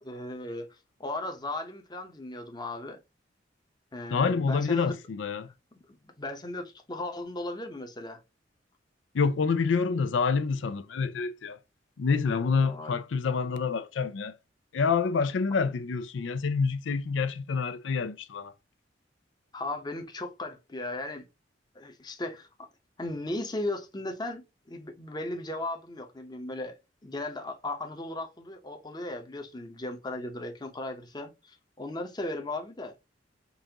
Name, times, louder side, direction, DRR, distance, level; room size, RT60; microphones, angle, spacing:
voice 1, 0.0-3.0 3.9-5.0 6.0-8.2 12.6-13.0 19.5-21.3 21.7-22.5 23.0-26.8 27.0-32.9, left 2 dB, 25° left, 0.8 m, -36 dB
voice 2, 4.1-5.5 9.1-11.6 12.0-14.3 14.7-18.5, left 5 dB, 90° left, 0.4 m, -27 dB
5.4 x 2.6 x 2.8 m
head